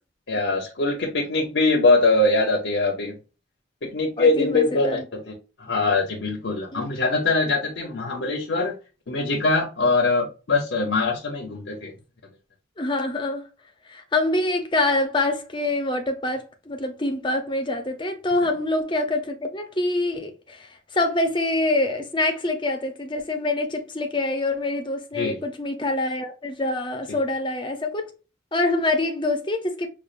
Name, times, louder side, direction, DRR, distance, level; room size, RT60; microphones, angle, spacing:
voice 1, 0.3-3.2 3.8-5.3 5.6-8.7 9.1-11.9 25.2-25.4, left 3 dB, 75° left, 0.8 m, -22 dB
voice 2, 4.2-5.0 6.7-6.9 12.8-13.4 13.9-28.1 28.5-29.9, left 2 dB, 25° left, 0.6 m, -25 dB
5.2 x 2.4 x 2.5 m
head